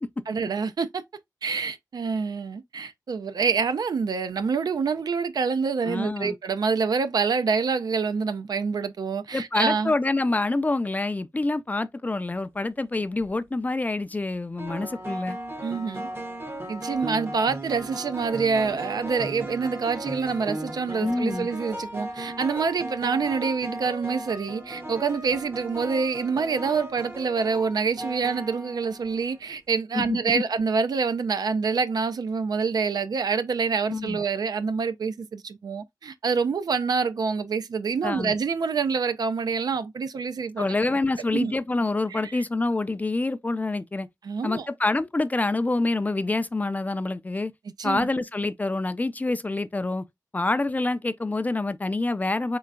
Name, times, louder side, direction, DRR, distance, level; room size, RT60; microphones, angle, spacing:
voice 1, 0.3-1.0 1.4-9.9 15.6-16.1 16.7-40.7 41.3-41.5 42.1-42.3 44.2-44.7 47.8-48.1, right 5 dB, 85° right, 0.4 m, -26 dB
voice 2, 5.8-6.4 9.3-15.4 21.0-21.5 29.9-30.4 33.9-34.2 38.0-38.3 40.6-44.1 44.4-47.5 47.8-50.0 50.3-52.6, left 2 dB, 25° left, 0.3 m, -26 dB
sound 1, 13.0-13.3 14.6-29.4, right 1 dB, 35° right, 0.7 m, -36 dB
3.8 x 3.2 x 2.2 m
wide cardioid pair, 90°, 7 cm